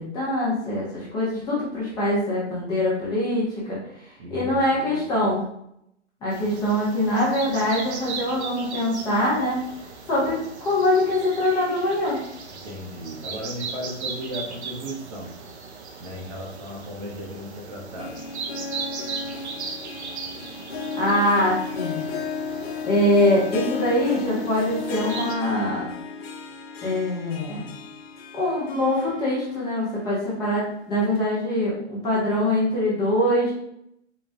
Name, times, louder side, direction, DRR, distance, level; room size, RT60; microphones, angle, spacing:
voice 1, 0.0-3.8 4.3-5.4 6.2-9.6 10.1-12.2 21.0-22.1 22.8-25.9 26.8-27.6 28.3-33.5, left 1 dB, 10° left, -8 dB, 0.8 m, -23 dB
voice 2, 4.2-5.3 6.4-6.5 12.6-15.3 16.0-18.4, equal, 35° right, -1 dB, 0.9 m, -36 dB
sound 1, 6.3-25.3, right 4 dB, 65° right, 0.8 m, -38 dB
Harp, 17.7-29.9 30.2-30.3 31.2-31.3, left 5 dB, 60° left, 0.7 m, -34 dB
4.2 x 2.3 x 3.4 m, 0.76 s
hypercardioid pair, 150°, 36 cm